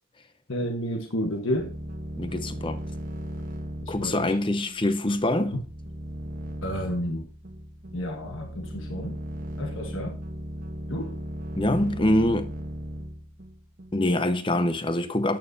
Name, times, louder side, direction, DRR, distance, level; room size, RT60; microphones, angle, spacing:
voice 1, 0.5-1.7 3.8-4.3 6.6-7.3 7.9-9.2 9.6-10.2 10.9-11.2, equal, 65° left, 1.2 m, -31 dB
sound 1, 1.6-14.1, equal, 40° right, 1.1 m, -37 dB
voice 2, 2.2-2.8 3.9-5.6 11.6-12.5 13.9-15.4, left 1 dB, 25° left, 0.8 m, -24 dB
13.5 x 9.2 x 2.7 m
head